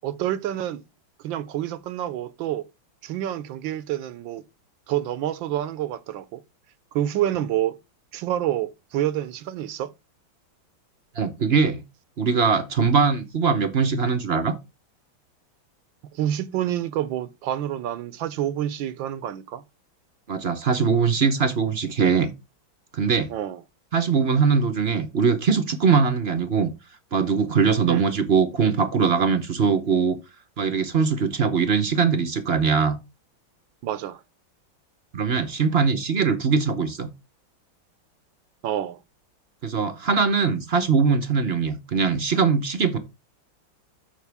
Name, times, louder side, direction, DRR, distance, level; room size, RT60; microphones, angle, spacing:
voice 1, 0.0-0.8 1.2-2.7 3.0-4.4 4.9-6.4 6.9-7.8 8.1-9.9 16.1-19.6 23.3-23.6 27.9-28.0 33.8-34.2 38.6-39.0, right 12 dB, 75° right, 1.4 m, -28 dB
voice 2, 11.1-11.8 12.2-14.5 20.3-22.3 22.9-23.3 23.9-26.7 27.1-30.2 30.6-33.0 35.1-37.1 39.6-43.0, right 5 dB, 50° right, 0.8 m, -21 dB
13.0 x 5.2 x 3.4 m
omnidirectional pair, 2.2 m